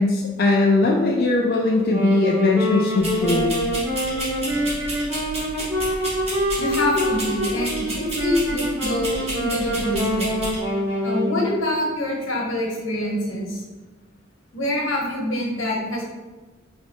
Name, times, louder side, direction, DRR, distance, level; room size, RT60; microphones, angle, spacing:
voice 1, 0.0-3.5, left 2 dB, 50° left, -2 dB, 0.4 m, -20 dB
Wind instrument woodwind instrument, 1.8-11.5, equal, 10° right, 0.9 m, -25 dB
sound 1, 3.0-10.6, right 1 dB, 30° right, 1.2 m, -32 dB
voice 2, 6.6-10.3 11.0-13.6 14.5-16.0, left 1 dB, 85° left, -1 dB, 1.2 m, -25 dB
3.7 x 3.1 x 3.6 m, 1.2 s
head